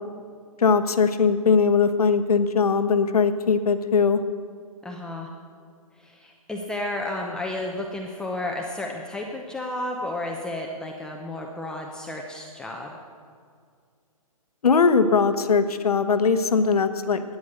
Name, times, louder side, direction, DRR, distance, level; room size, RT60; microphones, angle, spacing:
voice 1, 0.6-4.2 14.6-17.2, left 5 dB, 80° left, 9 dB, 1.0 m, -20 dB
voice 2, 4.8-5.3 6.0-12.9, left 1 dB, 5° left, 0 dB, 0.7 m, -32 dB
13.0 x 9.4 x 6.5 m, 2.2 s
hypercardioid pair, 145°, 19 cm